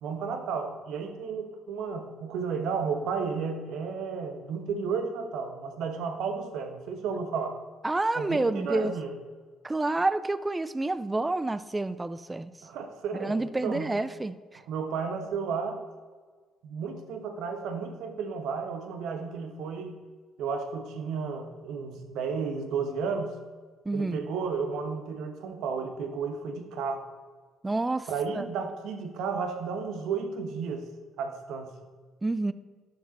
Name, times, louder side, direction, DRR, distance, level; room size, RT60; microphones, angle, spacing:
voice 1, 0.0-7.6 8.2-9.1 12.6-13.9 14.7-15.8 16.6-19.9 20.4-23.4 23.9-27.0 28.1-30.9 31.2-31.7, right 5 dB, 75° right, 6 dB, 1.0 m, -33 dB
voice 2, 7.8-8.9 9.6-12.5 13.2-14.6 23.9-24.3 27.6-28.5 32.2-32.5, right 2 dB, 15° right, 15 dB, 0.3 m, -29 dB
12.0 x 5.0 x 4.0 m, 1.5 s
cardioid pair, 95°, 0 cm